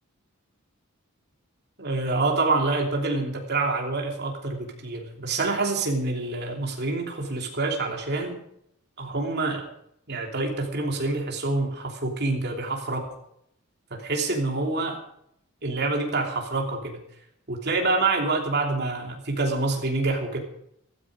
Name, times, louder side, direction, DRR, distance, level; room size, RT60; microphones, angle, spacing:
voice 1, 1.8-8.4 9.0-9.6 10.1-13.1 13.9-15.0 15.6-17.0 17.5-20.4, right 3 dB, 50° right, 1 dB, 3.1 m, -26 dB
14.5 x 14.0 x 4.9 m, 0.72 s
head